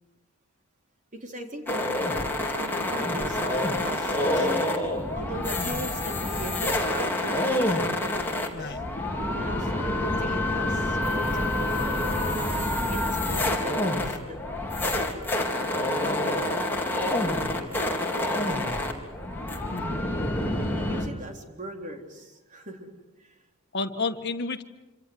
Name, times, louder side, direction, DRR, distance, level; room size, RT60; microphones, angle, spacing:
voice 1, 1.2-4.5 5.1-7.5 8.4-8.8 9.4-12.2 12.9-14.4 15.9-16.7 17.4-18.9 20.7-22.9 23.2-23.4, right 1 dB, 35° right, 3 dB, 3.9 m, -39 dB
sound 1, 1.7-21.1, left 1 dB, 10° left, 3.9 m, -27 dB
voice 2, 19.7-20.2 23.7-24.6, left 3 dB, 50° left, 5 dB, 1.8 m, -32 dB
27.0 x 26.5 x 8.0 m, 1.0 s
head